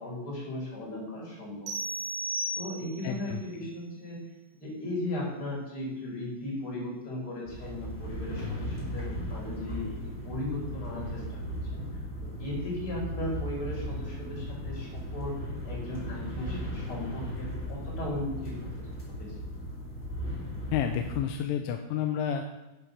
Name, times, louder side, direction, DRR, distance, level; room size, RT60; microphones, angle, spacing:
voice 1, 0.0-1.7 2.6-4.2 4.6-10.0 10.2-11.8 12.4-15.3 15.6-18.5 19.2-19.3, left 1 dB, 25° left, -5 dB, 6.4 m, -36 dB
sound 1, 1.7-3.2, right 1 dB, 85° right, 4.9 m, -34 dB
voice 2, 3.0-3.4 20.7-22.6, left 9 dB, 90° left, 5 dB, 3.4 m, -30 dB
sound 2, 7.4-21.2, equal, 10° left, 5.4 m, -37 dB
11.0 x 11.0 x 7.0 m, 1.0 s
omnidirectional pair, 5.7 m